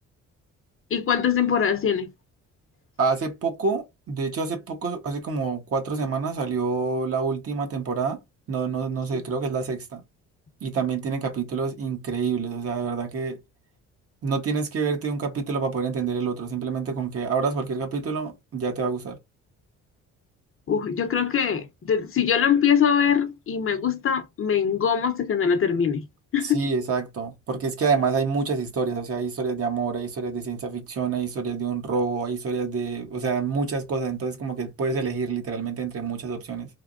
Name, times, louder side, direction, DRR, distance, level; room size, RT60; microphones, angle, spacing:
voice 1, 0.9-2.1 9.1-9.2 20.7-26.0 26.3-26.6, left 7 dB, 45° left, 0.8 m, -23 dB
voice 2, 3.0-8.2 8.5-10.0 10.6-13.4 14.2-19.2 26.4-36.7, right 5 dB, 50° right, 1.1 m, -27 dB
3.4 x 2.2 x 2.5 m
cardioid pair, 90°, 30 cm